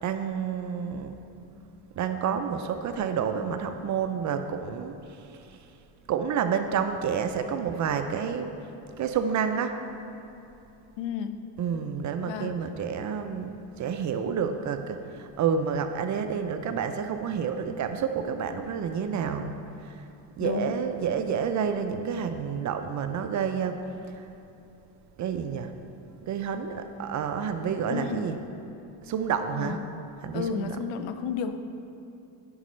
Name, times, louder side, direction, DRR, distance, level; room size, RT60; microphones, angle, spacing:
voice 1, 0.0-1.2 2.0-4.9 5.3-5.6 6.1-8.5 9.0-9.8 11.6-19.5 19.8-20.0 20.4-23.8 24.1-24.3 25.2-25.7 26.2-28.4 29.0-29.8 30.2-30.8, right 7 dB, 40° right, 7 dB, 0.4 m, -29 dB
voice 2, 11.0-11.4 12.2-12.6 20.4-20.7 27.9-28.3 29.5-29.8 30.3-31.6, left 7 dB, 70° left, 9 dB, 0.6 m, -32 dB
9.5 x 5.3 x 3.1 m, 2.7 s
cardioid pair, 105°, 46 cm